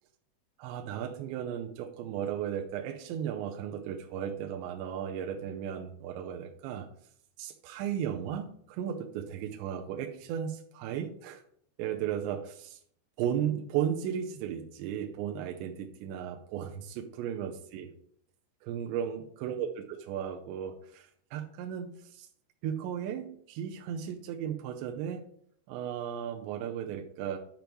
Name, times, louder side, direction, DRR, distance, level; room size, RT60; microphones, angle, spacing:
voice 1, 0.6-6.9 7.4-11.4 11.8-12.8 13.2-17.9 18.6-22.3 22.6-25.2 25.7-27.4, right 9 dB, 85° right, 4 dB, 3.0 m, -35 dB
10.5 x 5.3 x 4.6 m, 0.64 s
omnidirectional pair, 5.1 m